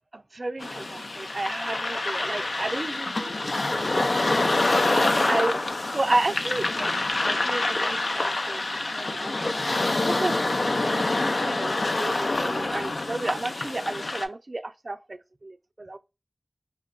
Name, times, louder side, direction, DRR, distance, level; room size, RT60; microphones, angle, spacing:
voice 1, 0.1-5.6 5.9-6.9 7.2-8.6 8.9-9.3 9.7-16.0, right 2 dB, 55° right, 0.3 m, -32 dB
sound 1, 0.6-14.3, left 2 dB, 75° left, 0.3 m, -26 dB
3.6 x 2.1 x 2.3 m
wide cardioid pair, 60°, 0 cm